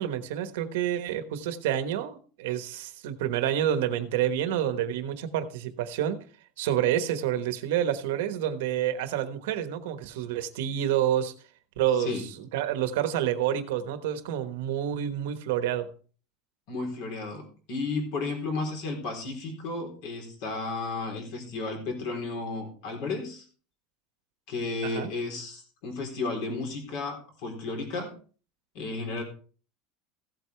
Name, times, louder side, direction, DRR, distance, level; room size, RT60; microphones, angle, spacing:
voice 1, 0.0-6.2 6.6-11.3 11.8-15.9 24.8-25.1, right 10 dB, 75° right, 10 dB, 1.2 m, -28 dB
voice 2, 16.7-23.5 24.5-28.1 28.7-29.2, left 3 dB, 50° left, 3 dB, 3.8 m, -33 dB
15.5 x 7.9 x 3.4 m, 0.39 s
supercardioid pair, 180°, 0 cm